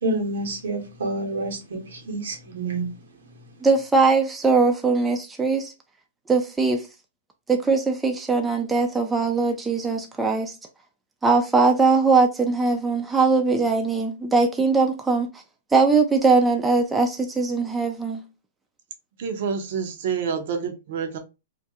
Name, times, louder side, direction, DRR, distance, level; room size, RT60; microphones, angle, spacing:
voice 1, 0.0-2.9, right 2 dB, 80° right, 0.9 m, -28 dB
voice 2, 3.6-5.7 6.3-6.9 7.5-10.5 11.2-15.3 15.7-18.2, right 4 dB, 10° right, 0.3 m, -20 dB
voice 3, 19.2-21.2, right 6 dB, 55° right, 0.6 m, -28 dB
2.3 x 2.2 x 2.7 m
hypercardioid pair, 140°, 0 cm